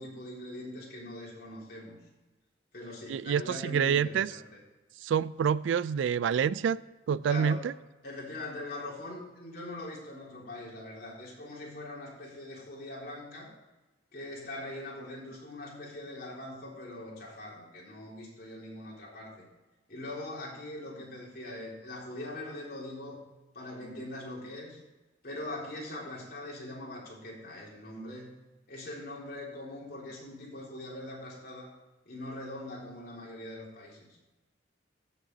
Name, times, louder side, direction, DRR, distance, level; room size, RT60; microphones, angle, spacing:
voice 1, 0.0-2.0 2.7-4.6 7.2-7.7 8.0-13.5 14.1-19.5 19.9-23.2 23.5-24.8 25.2-28.3 28.7-31.7 32.1-34.1, left 1 dB, 55° left, -4 dB, 3.7 m, -42 dB
voice 2, 3.1-4.3 5.0-6.8 7.1-7.7, right 7 dB, 90° right, 19 dB, 0.3 m, -27 dB
15.0 x 6.7 x 4.0 m, 1.1 s
head